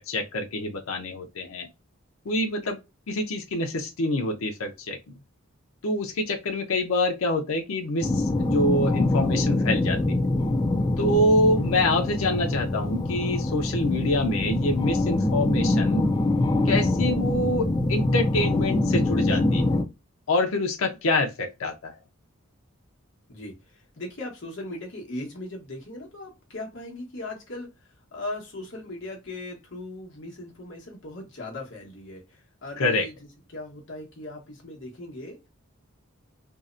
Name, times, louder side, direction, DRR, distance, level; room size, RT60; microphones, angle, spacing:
voice 1, 0.0-1.7 2.3-2.8 3.1-5.1 5.8-10.2 11.0-16.1 16.6-19.7 20.3-22.0 32.8-33.1, left 1 dB, 75° left, 0.5 m, -26 dB
sound 1, 8.0-19.8, left 2 dB, 20° left, 0.3 m, -24 dB
voice 2, 23.3-27.7 28.1-35.4, left 2 dB, 55° left, 0.9 m, -38 dB
2.7 x 2.0 x 2.4 m
head